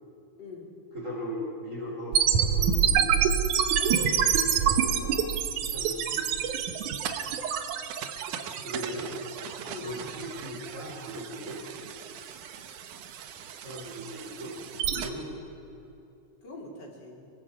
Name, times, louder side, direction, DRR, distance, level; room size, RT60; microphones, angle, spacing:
voice 1, 0.4-0.7 3.8-4.2 9.6-9.9 15.1-15.3 16.4-17.3, left 3 dB, 35° left, -1 dB, 3.4 m, -41 dB
voice 2, 0.9-3.3 4.2-5.2 5.6-6.7 8.6-9.1 9.8-11.6 13.6-14.6 14.8-15.4, right 1 dB, 20° right, -5 dB, 4.0 m, -38 dB
sound 1, 2.1-15.1, right 8 dB, 75° right, 2.4 m, -28 dB
25.5 x 22.0 x 4.8 m, 2.6 s
omnidirectional pair, 3.8 m